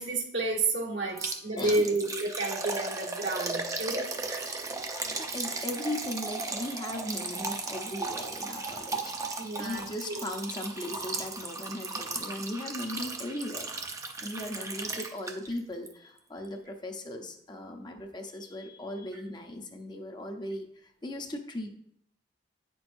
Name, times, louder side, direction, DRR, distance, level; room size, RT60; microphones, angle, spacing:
voice 1, 0.0-4.5 9.4-10.2 14.3-14.6, right 2 dB, 80° right, -2 dB, 1.5 m, -31 dB
voice 2, 1.1-2.0 4.9-13.7 14.2-21.7, left 1 dB, 25° left, 4 dB, 0.7 m, -38 dB
Liquid, 1.2-15.6 15.9-16.0 16.4-16.5, right 3 dB, 15° right, 0.5 m, -36 dB
8.7 x 6.1 x 2.6 m, 0.71 s
head